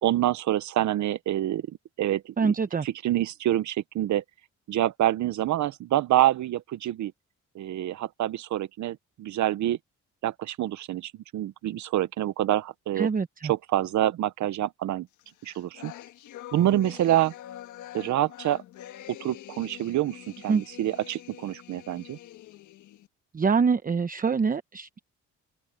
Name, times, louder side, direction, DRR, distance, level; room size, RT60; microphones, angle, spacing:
voice 1, 0.0-2.5 3.0-4.2 4.7-7.1 7.5-9.8 10.2-13.1 13.5-15.1 15.4-15.9 16.5-17.3 17.9-18.6 19.1-22.2, right 13 dB, 70° right, 0.9 m, -26 dB
voice 2, 2.4-2.9 13.0-13.5 20.5-20.6 23.3-25.0, right 5 dB, 30° right, 0.9 m, -25 dB
sound 1, 15.2-23.1, left 13 dB, 80° left, 1.5 m, -45 dB
cardioid pair, 90°, 30 cm